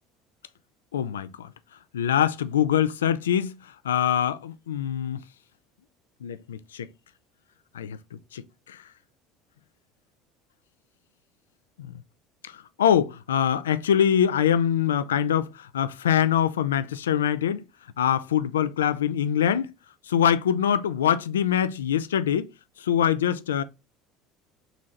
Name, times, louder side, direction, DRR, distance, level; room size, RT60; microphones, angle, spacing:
voice 1, 0.9-1.5 1.9-3.6 3.8-5.2 6.2-6.9 7.7-8.0 8.3-8.4 8.7-8.8 11.8-11.9 12.8-17.6 18.0-19.7 20.1-22.5 22.8-23.6, left 9 dB, 85° left, 0.3 m, -24 dB
3.9 x 3.1 x 3.7 m
hypercardioid pair, 70°, 0 cm